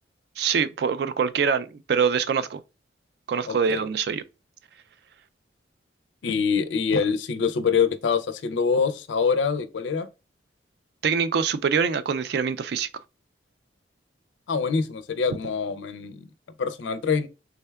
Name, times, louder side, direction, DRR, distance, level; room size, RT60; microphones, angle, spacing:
voice 1, 0.4-2.6 3.3-4.2 11.0-12.9, right 6 dB, 60° right, 0.3 m, -24 dB
voice 2, 3.5-3.8 6.2-10.1 14.5-16.2 16.6-17.3, left 5 dB, 85° left, 0.4 m, -25 dB
3.6 x 3.2 x 2.2 m
head